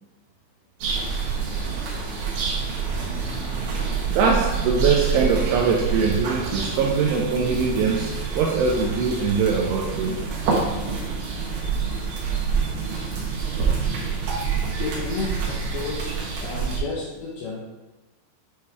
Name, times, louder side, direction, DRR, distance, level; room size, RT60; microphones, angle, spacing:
sound 1, 0.8-16.8, right 5 dB, 70° right, 2.9 m, -27 dB
voice 1, 4.1-10.2, right 5 dB, 85° right, 0 dB, 2.5 m, -22 dB
voice 2, 14.8-16.1 16.4-17.6, left 4 dB, 80° left, -4 dB, 2.3 m, -31 dB
9.4 x 3.2 x 3.5 m, 1.1 s
omnidirectional pair, 5.3 m